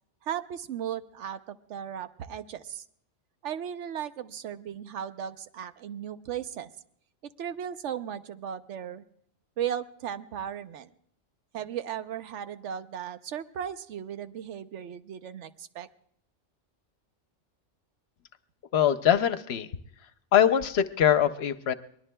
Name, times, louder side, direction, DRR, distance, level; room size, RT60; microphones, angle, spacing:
voice 1, 0.2-2.8 3.4-6.7 7.4-9.0 9.6-10.9 11.5-15.9, right 9 dB, 80° right, 11 dB, 1.0 m, -36 dB
voice 2, 18.7-19.7 20.3-21.7, left 9 dB, 65° left, 11 dB, 0.9 m, -23 dB
24.0 x 19.5 x 2.2 m, 0.69 s
omnidirectional pair, 1.2 m